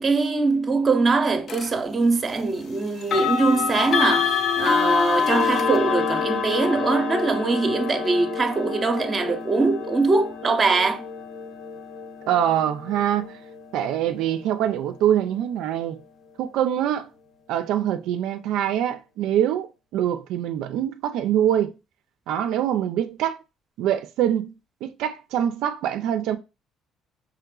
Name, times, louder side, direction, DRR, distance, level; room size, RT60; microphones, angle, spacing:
voice 1, 0.0-11.1, right 3 dB, 25° right, 0.6 m, -22 dB
sound 1, 1.5-1.7 3.0-13.9, left 6 dB, 50° left, 0.4 m, -26 dB
voice 2, 12.3-13.4 13.7-16.0 16.4-17.1 17.5-21.7 22.3-23.4 23.8-24.5 24.8-26.4, right 10 dB, 80° right, 0.3 m, -24 dB
4.8 x 3.1 x 2.3 m
cardioid pair, 130°, 0 cm